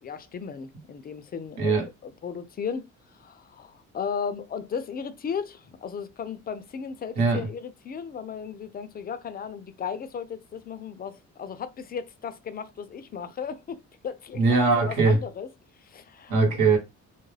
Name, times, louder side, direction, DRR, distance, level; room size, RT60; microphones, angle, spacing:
voice 1, 0.0-1.8 2.0-2.9 3.1-14.6 14.8-15.5 15.8-16.4, left 6 dB, 30° left, 0.4 m, -35 dB
voice 2, 7.2-7.5 14.4-15.2 16.3-16.8, right 3 dB, 80° right, 1.2 m, -21 dB
2.3 x 2.1 x 3.2 m
cardioid pair, 90°, 30 cm